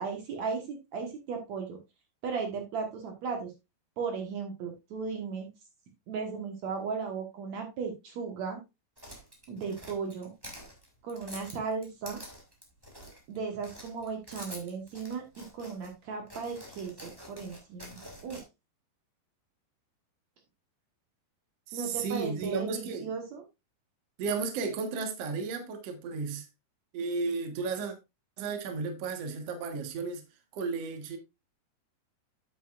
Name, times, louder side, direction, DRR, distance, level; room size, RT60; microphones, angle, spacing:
voice 1, 0.0-1.8 2.2-3.5 4.0-5.5 6.1-8.6 9.5-10.3 11.0-12.2 13.3-18.4 21.7-23.4, right 5 dB, 70° right, 1.7 m, -36 dB
sound 1, 9.0-13.4 13.6-15.9 16.3-18.4, equal, 10° right, 1.3 m, -47 dB
voice 2, 21.7-23.1 24.2-26.5 26.9-27.9 28.4-30.2 30.5-31.2, right 4 dB, 85° right, 1.3 m, -33 dB
9.1 x 8.8 x 2.4 m
omnidirectional pair, 5.1 m